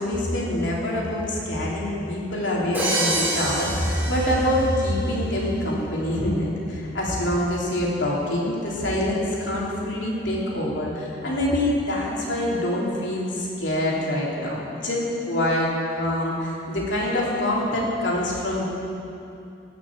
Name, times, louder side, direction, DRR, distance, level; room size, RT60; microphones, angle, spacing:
voice 1, 0.0-14.6 14.8-15.0 15.3-18.6, left 1 dB, 85° left, -4 dB, 3.0 m, -25 dB
Crash cymbal, 2.7-5.0, right 1 dB, 10° right, 2.5 m, -27 dB
18.0 x 6.2 x 7.3 m, 2.8 s
head